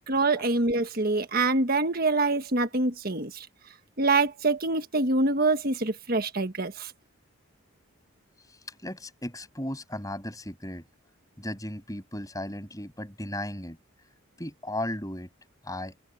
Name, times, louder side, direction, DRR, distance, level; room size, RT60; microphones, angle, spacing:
voice 1, 0.1-3.5 4.0-6.9, right 3 dB, 45° right, 1.5 m, -25 dB
voice 2, 8.4-10.9 11.4-13.8 14.4-15.3 15.6-16.0, left 1 dB, 15° left, 7.3 m, -36 dB
open air
head